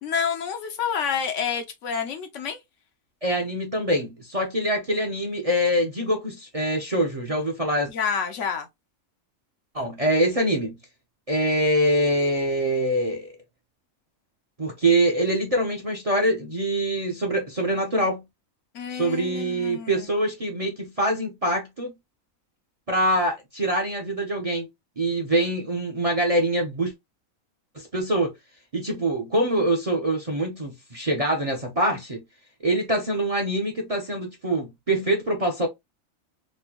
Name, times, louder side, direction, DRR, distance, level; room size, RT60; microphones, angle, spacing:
voice 1, 0.0-2.6 7.9-8.7 18.7-20.0, left 7 dB, 70° left, 0.9 m, -28 dB
voice 2, 3.2-7.9 9.7-10.8 11.3-13.3 14.6-18.2 18.9-21.9 22.9-24.7 25.0-26.9 27.7-28.3 28.7-32.2 32.6-35.7, right 1 dB, 35° right, 0.6 m, -24 dB
4.2 x 2.2 x 2.9 m
omnidirectional pair, 1.5 m